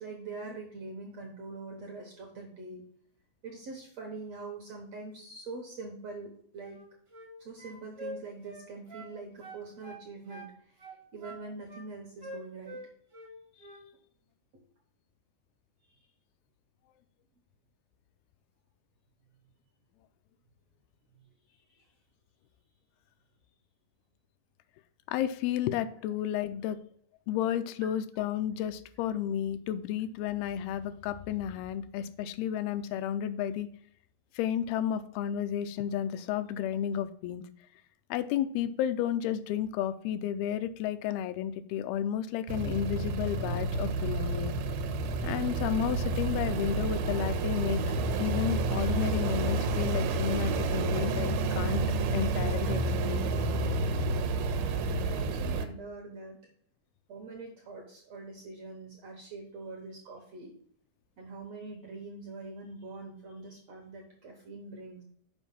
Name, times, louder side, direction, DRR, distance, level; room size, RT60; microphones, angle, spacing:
voice 1, 0.0-2.8 3.4-6.8 7.4-12.8 14.5-14.6 16.0-16.1 54.3-56.4 57.1-60.5 61.2-65.0, right 3 dB, 65° right, 1 dB, 1.7 m, -44 dB
sound 1, 6.6-7.3 7.6-9.1 9.4-10.5 10.8-11.8 12.2-13.3 13.6-13.8, right 1 dB, 40° right, 0.8 m, -45 dB
voice 2, 25.1-26.8 27.3-33.7 34.4-37.4 38.1-44.5 45.2-51.8 52.1-53.3, left 10 dB, 85° left, 11 dB, 2.4 m, -32 dB
sound 2, 42.5-55.7, right 3 dB, 90° right, 2.7 m, -30 dB
7.2 x 5.1 x 5.5 m, 0.62 s
omnidirectional pair, 4.4 m